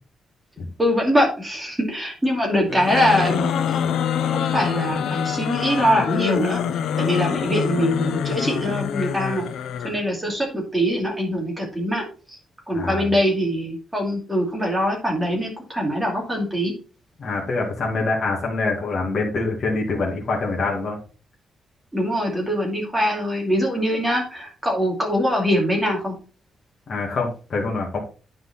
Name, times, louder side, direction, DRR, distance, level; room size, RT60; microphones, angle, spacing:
voice 1, 0.8-3.5 4.3-6.6 7.0-9.5 9.8-12.1 12.7-16.7 21.9-26.2, equal, 10° right, -1 dB, 2.7 m, -23 dB
sound 1, 2.7-10.0, left 8 dB, 80° left, 0.7 m, -25 dB
voice 2, 12.7-13.1 17.2-21.0 26.9-28.0, left 3 dB, 40° left, -2 dB, 2.3 m, -25 dB
9.8 x 4.9 x 4.1 m, 0.36 s
wide cardioid pair, 165°, 0 cm